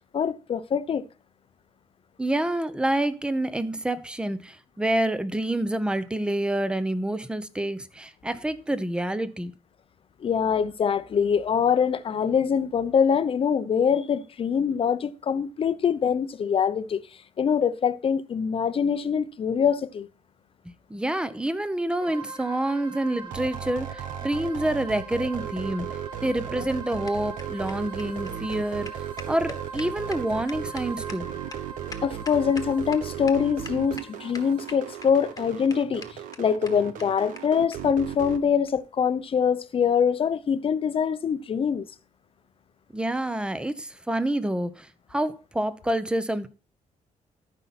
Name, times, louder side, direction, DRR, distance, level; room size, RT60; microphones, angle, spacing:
voice 1, 0.1-1.0 10.2-17.0 17.4-20.1 32.0-41.8, left 7 dB, 45° left, 0.7 m, -24 dB
voice 2, 2.2-9.5 20.9-25.9 26.2-31.3 42.9-46.5, right 1 dB, 5° right, 0.9 m, -28 dB
sound 1, 22.0-35.6, right 4 dB, 40° right, 3.1 m, -42 dB
sound 2, 23.2-38.4, right 10 dB, 85° right, 1.0 m, -36 dB
sound 3, 26.3-33.0 33.3-33.4 33.6-34.1 34.3-35.1 35.4-35.5 35.7-35.8 36.0-36.1 36.3-36.4 36.7-36.8 37.0-37.1 37.4-37.5 37.7-37.8 38.6-38.8, left 4 dB, 25° left, 1.4 m, -42 dB
13.5 x 5.5 x 4.2 m
cardioid pair, 110°, 13 cm